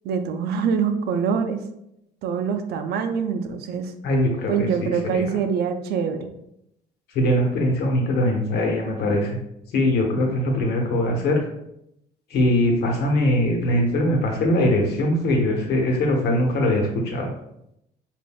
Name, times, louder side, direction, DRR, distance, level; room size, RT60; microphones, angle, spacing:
voice 1, 0.0-1.6 2.2-3.9 4.5-6.3, right 6 dB, 75° right, 7 dB, 0.5 m, -24 dB
voice 2, 4.0-5.3 7.1-9.4 9.7-11.4 12.3-17.3, left 1 dB, 75° left, 1 dB, 1.1 m, -21 dB
7.3 x 2.6 x 2.2 m, 0.80 s
cardioid pair, 110°, 17 cm